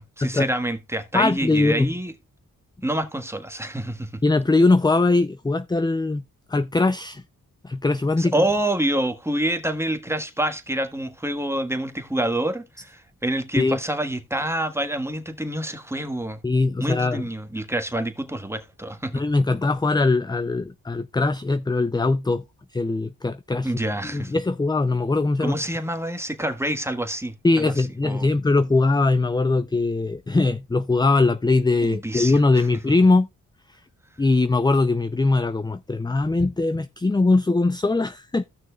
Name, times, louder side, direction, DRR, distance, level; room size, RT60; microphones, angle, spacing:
voice 1, 0.0-2.1 2.8-4.2 8.2-16.4 16.8-19.2 23.6-24.3 25.4-28.3 31.8-32.7, right 1 dB, 10° right, 1.5 m, -27 dB
voice 2, 1.1-1.9 4.2-6.2 6.5-7.2 7.6-8.3 13.6-13.8 16.4-17.2 19.1-22.4 22.7-23.7 24.1-25.6 27.4-33.3 34.2-38.4, left 3 dB, 15° left, 0.5 m, -21 dB
16.0 x 6.1 x 2.3 m
cardioid pair, 55°, 34 cm